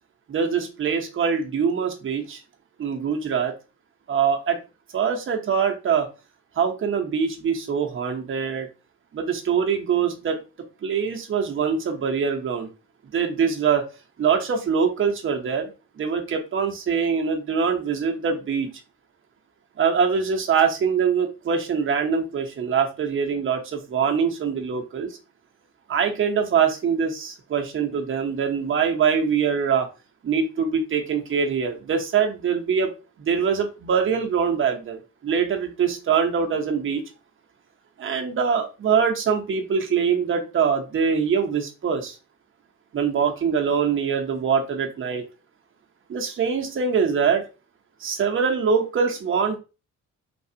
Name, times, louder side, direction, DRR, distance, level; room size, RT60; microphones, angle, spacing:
voice 1, 0.3-2.4 2.8-3.5 4.1-4.6 4.9-6.1 6.6-8.7 9.1-10.4 10.8-12.7 13.1-13.9 14.2-15.7 16.0-18.7 19.8-25.2 25.9-29.9 30.2-32.9 33.2-37.0 38.0-42.2 42.9-45.2 46.1-47.4 48.0-49.6, right 6 dB, 45° right, 3 dB, 0.8 m, -23 dB
3.3 x 2.3 x 2.7 m, 0.30 s
cardioid pair, 90°, 30 cm